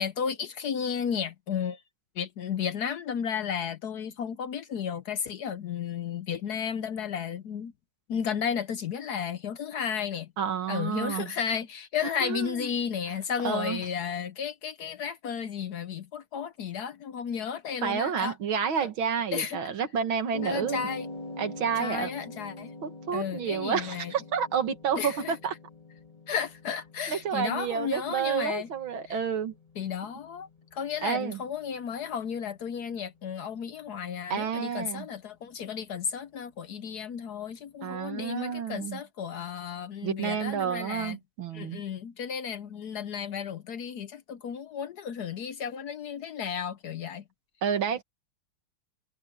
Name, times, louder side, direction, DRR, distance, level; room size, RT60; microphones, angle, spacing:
voice 1, 0.0-1.8 2.2-7.7 8.1-10.3 10.7-18.3 19.3-19.6 20.4-21.1 21.8-22.7 23.1-24.1 25.0-25.3 26.3-28.7 29.1-29.2 29.8-41.2 41.5-47.2, left 7 dB, 65° left, 1.1 m, -33 dB
voice 2, 10.4-11.3 12.0-12.7 13.4-13.8 17.8-20.8 21.4-22.1 22.8-25.5 27.1-29.5 31.0-31.4 34.3-35.1 37.8-39.0 40.0-41.8 47.6-48.0, right 7 dB, 75° right, 2.4 m, -30 dB
sound 1, 20.3-38.6, left 2 dB, 15° left, 4.2 m, -46 dB
omnidirectional pair, 2.2 m